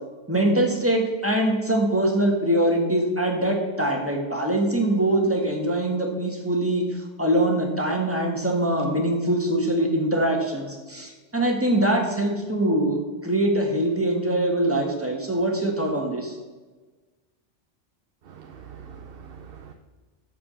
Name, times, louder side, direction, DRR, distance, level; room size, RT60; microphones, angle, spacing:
voice 1, 0.3-16.4, right 1 dB, 10° right, 1 dB, 1.6 m, -23 dB
voice 2, 18.2-19.7, right 7 dB, 55° right, 5 dB, 0.8 m, -43 dB
13.0 x 4.9 x 6.3 m, 1.3 s
omnidirectional pair, 1.2 m